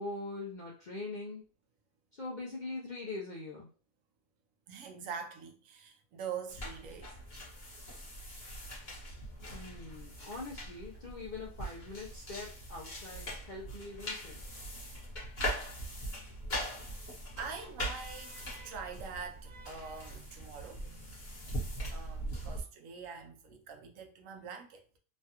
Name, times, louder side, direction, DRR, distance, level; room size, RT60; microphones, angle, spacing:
voice 1, 0.0-1.4 2.1-3.7 9.5-14.4, left 3 dB, 55° left, 0.5 m, -42 dB
voice 2, 4.7-7.1 17.4-20.9 21.9-25.0, right 6 dB, 75° right, 1.0 m, -44 dB
sound 1, 6.5-22.6, equal, 35° left, 1.1 m, -41 dB
3.2 x 2.3 x 2.7 m
omnidirectional pair, 1.4 m